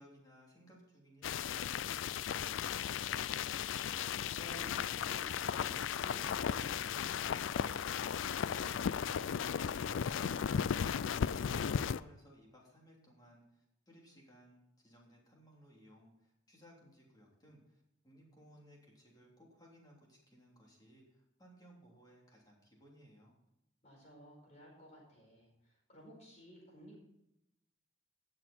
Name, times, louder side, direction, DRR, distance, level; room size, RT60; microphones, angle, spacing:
voice 1, 0.0-3.6 10.2-23.3, equal, 20° left, -3 dB, 3.1 m, -61 dB
sound 1, 1.2-12.0, left 8 dB, 75° left, 0.4 m, -36 dB
voice 2, 4.1-9.7 23.8-27.0, equal, 35° left, -2 dB, 4.7 m, -56 dB
17.5 x 6.6 x 4.4 m, 0.85 s
head